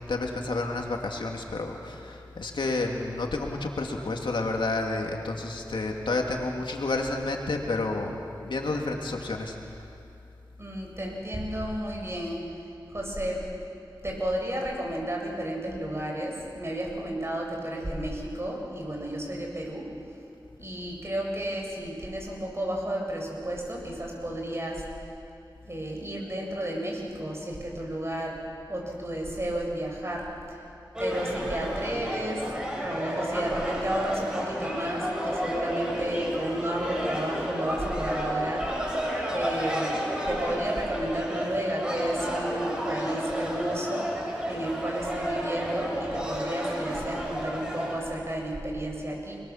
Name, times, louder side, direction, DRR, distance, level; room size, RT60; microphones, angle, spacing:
voice 1, 0.1-9.8, left 2 dB, 90° left, 1 dB, 2.5 m, -30 dB
voice 2, 10.6-13.4 14.0-19.9 20.6-25.1 25.6-28.4 28.7-30.7 31.0-38.9 39.3-44.1 44.4-49.4, right 1 dB, 35° right, -1 dB, 7.6 m, -32 dB
sound 1, 30.9-47.9, equal, 10° right, 7.4 m, -31 dB
29.5 x 21.5 x 7.4 m, 2.6 s
cardioid pair, 45°, 8 cm